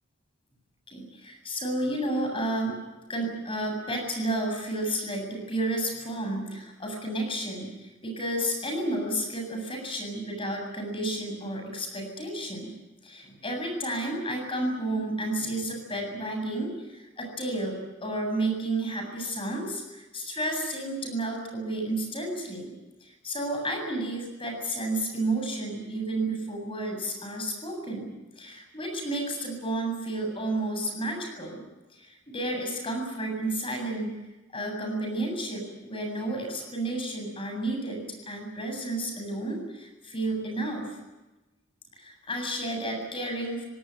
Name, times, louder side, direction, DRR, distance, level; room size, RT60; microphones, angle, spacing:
voice 1, 0.9-2.8 3.1-12.7 13.0-17.7 18.0-22.8 23.0-31.6 31.9-34.2 34.5-41.0 41.9-43.6, right 1 dB, 30° left, 3 dB, 7.7 m, -31 dB
25.0 x 18.5 x 9.4 m, 1.1 s
head